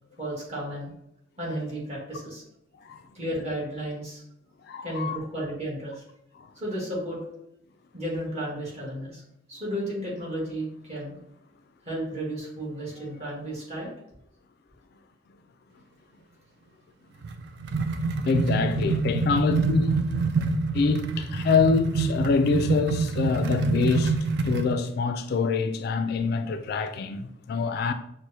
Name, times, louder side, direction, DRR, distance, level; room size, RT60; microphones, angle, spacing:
voice 1, 0.2-0.9 1.4-2.4 3.1-4.2 4.8-6.0 6.5-7.3 7.9-9.2 9.5-11.1 11.8-13.9, right 1 dB, 35° right, 1.4 m, -33 dB
voice 2, 4.7-5.2 6.4-6.5 18.2-20.0 20.7-24.2 24.4-27.9, left 4 dB, 55° left, 0.3 m, -25 dB
sound 1, 17.2-24.8, right 3 dB, 65° right, 0.4 m, -26 dB
6.1 x 2.0 x 2.7 m
head